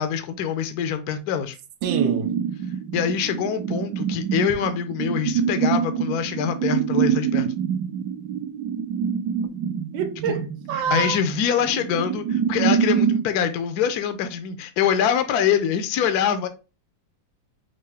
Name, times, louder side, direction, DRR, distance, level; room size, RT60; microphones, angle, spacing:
voice 1, 0.0-1.6 2.9-7.5 10.3-10.4 10.9-16.5, left 8 dB, 70° left, 1.0 m, -24 dB
sound 1, 1.8-13.3, right 8 dB, 70° right, 1.2 m, -25 dB
voice 2, 1.8-2.4 9.9-11.2, right 7 dB, 90° right, 1.5 m, -27 dB
5.5 x 2.5 x 3.4 m
omnidirectional pair, 2.1 m